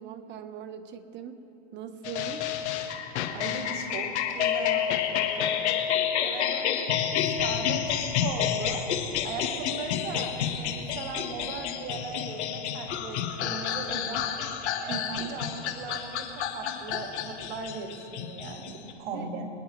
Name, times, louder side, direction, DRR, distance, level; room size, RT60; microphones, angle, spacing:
voice 1, 0.0-1.4 1.7-2.5 14.9-15.4 19.1-19.3, right 8 dB, 30° right, 7 dB, 1.1 m, -40 dB
sound 1, 2.0-18.9, left 9 dB, 75° left, 1.5 m, -29 dB
voice 2, 3.3-5.8 6.2-8.8 9.2-14.3 14.8-19.5, right 4 dB, 55° right, 1 dB, 2.7 m, -38 dB
25.0 x 10.0 x 3.2 m, 2.9 s
supercardioid pair, 125°, 34 cm